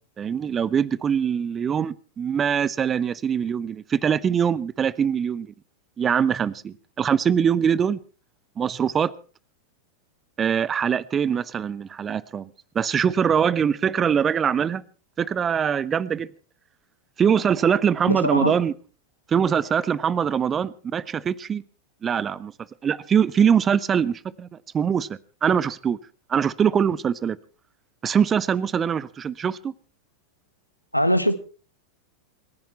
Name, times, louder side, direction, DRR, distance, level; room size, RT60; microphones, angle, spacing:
voice 1, 0.2-5.5 6.0-8.0 8.6-9.1 10.4-12.5 12.7-14.8 15.2-16.3 17.2-18.7 19.3-21.6 22.0-22.5 22.8-24.5 24.7-25.1 25.4-26.0 26.3-27.4 28.0-29.7, right 7 dB, 20° right, 22 dB, 0.7 m, -23 dB
voice 2, 18.1-18.5 30.9-31.4, equal, 90° left, 13 dB, 1.2 m, -21 dB
27.5 x 10.5 x 4.4 m, 0.38 s
figure-of-eight pair, 90°, 0 cm